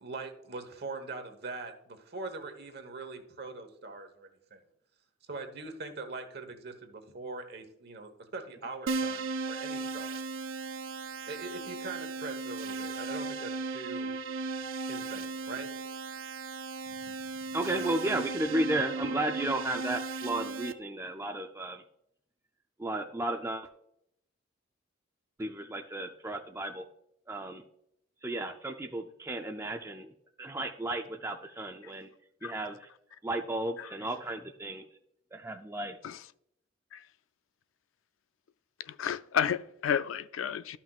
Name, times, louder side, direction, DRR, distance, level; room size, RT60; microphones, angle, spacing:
voice 1, 0.0-4.6 5.3-10.2 11.3-14.1 14.9-15.7 16.9-17.1 17.7-17.9, right 3 dB, 50° right, 1.2 m, -42 dB
Keyboard (musical), 8.9-20.7, right 3 dB, 70° right, 0.5 m, -36 dB
voice 2, 17.5-21.8 22.8-23.7 25.4-26.8 27.3-27.6 28.2-30.1 30.4-32.1 32.4-32.9 33.2-34.8 35.3-36.0, right 1 dB, 15° right, 0.4 m, -33 dB
voice 3, 38.8-40.8, left 8 dB, 75° left, 0.4 m, -32 dB
13.0 x 5.8 x 2.4 m
head